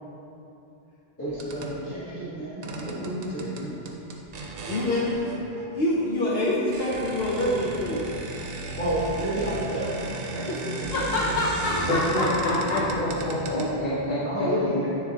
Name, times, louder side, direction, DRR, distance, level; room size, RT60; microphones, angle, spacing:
voice 1, 1.2-3.8 8.8-11.2 14.2-14.9, right 1 dB, 15° left, -13 dB, 1.5 m, -30 dB
sound 1, 1.3-1.8 2.6-5.7 6.4-6.5 6.7-14.0, right 2 dB, 65° right, 0.8 m, -35 dB
voice 2, 4.6-5.1 5.7-8.0 10.5-10.6 10.9-12.8, left 1 dB, 70° left, -5 dB, 1.0 m, -26 dB
voice 3, 11.9-14.2, left 1 dB, 50° left, -9 dB, 1.1 m, -27 dB
9.6 x 3.8 x 2.9 m, 2.9 s
omnidirectional pair, 1.1 m